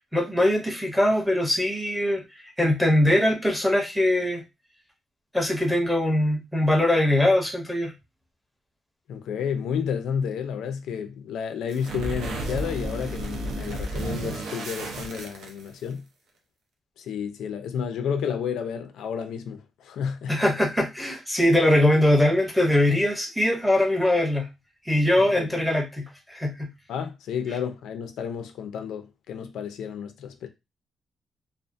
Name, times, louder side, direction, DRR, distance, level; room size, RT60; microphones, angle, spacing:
voice 1, 0.1-2.2 2.6-4.4 5.3-7.9 20.3-24.5 24.8-26.7, left 1 dB, ahead, 0.6 m, -22 dB
voice 2, 9.1-16.0 17.0-20.4 25.2-25.5 26.9-30.5, left 7 dB, 90° left, 0.4 m, -31 dB
sound 1, 11.7-15.9, right 2 dB, 85° right, 0.6 m, -32 dB
2.5 x 2.4 x 2.5 m
cardioid pair, 180°, 0 cm